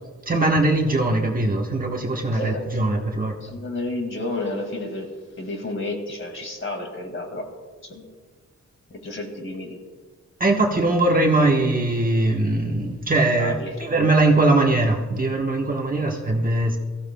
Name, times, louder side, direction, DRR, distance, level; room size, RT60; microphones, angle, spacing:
voice 1, 0.3-3.3 10.4-16.8, right 2 dB, 30° right, 0 dB, 1.2 m, -21 dB
voice 2, 2.3-2.6 3.4-7.5 7.8-8.1 8.9-9.8 13.4-13.7 16.0-16.1, left 2 dB, 45° left, 3 dB, 2.1 m, -31 dB
22.0 x 14.5 x 2.3 m, 1.4 s
wide cardioid pair, 140°, 29 cm